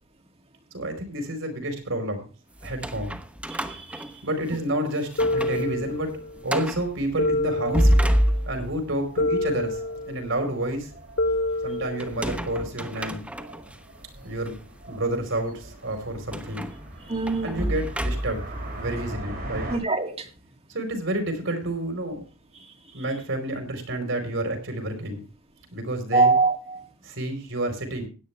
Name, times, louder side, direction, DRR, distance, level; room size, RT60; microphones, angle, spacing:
voice 1, 0.7-2.3 2.6-3.2 4.2-6.1 6.4-8.0 8.4-10.9 11.6-13.3 14.2-14.6 14.9-16.7 17.4-18.4 18.8-19.7 20.7-22.2 22.9-25.2 25.7-26.4 27.0-28.1, right 1 dB, 70° right, 4.7 m, -29 dB
sound 1, 2.6-4.7 5.1-5.7 6.0-6.1 6.5-6.9 7.5-8.8 12.0-13.8 14.4-14.6 16.3-18.6, equal, 5° right, 1.0 m, -27 dB
voice 2, 3.7-4.0 17.1-17.7 19.7-20.3 26.1-26.9, right 3 dB, 30° right, 2.4 m, -23 dB
sound 2, 5.2-6.4 7.2-8.4 9.2-10.3 11.2-12.4, left 2 dB, 70° left, 2.0 m, -27 dB
sound 3, 5.5-19.8, right 1 dB, 50° right, 7.5 m, -42 dB
17.0 x 10.5 x 3.4 m
head